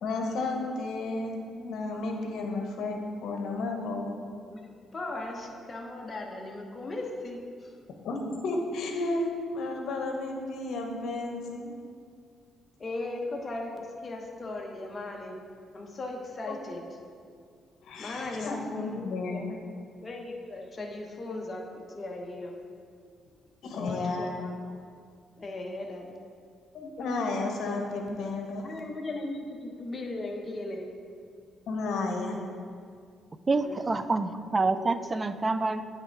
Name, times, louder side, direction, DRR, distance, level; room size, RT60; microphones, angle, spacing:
voice 1, 0.0-4.1 8.0-11.7 16.5-16.6 17.8-19.6 23.6-24.3 26.7-28.7 31.7-32.4 34.6-34.9, left 3 dB, 75° left, 2 dB, 1.0 m, -32 dB
voice 2, 4.5-7.8 12.8-15.4 15.7-16.9 18.0-19.5 20.0-22.6 23.7-24.7 25.4-26.1 28.6-30.9 33.5-33.9, left 2 dB, 35° left, 1 dB, 1.0 m, -37 dB
voice 3, 33.5-35.9, right 3 dB, 25° right, 11 dB, 0.3 m, -27 dB
8.7 x 3.5 x 4.6 m, 2.2 s
cardioid pair, 90°, 0 cm